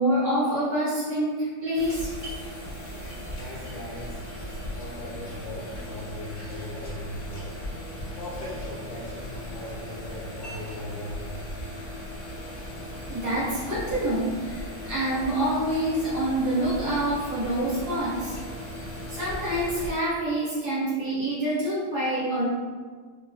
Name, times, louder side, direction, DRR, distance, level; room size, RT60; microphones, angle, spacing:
voice 1, 0.0-2.1 13.1-18.4 19.1-22.5, right 1 dB, 60° right, -11 dB, 2.0 m, -26 dB
sound 1, 1.7-19.9, left 1 dB, 45° left, 1.0 m, -37 dB
voice 2, 3.3-4.2 4.7-7.5 8.2-11.4, left 1 dB, 75° left, -5 dB, 1.2 m, -39 dB
3.9 x 2.3 x 2.2 m, 1.5 s
omnidirectional pair, 2.3 m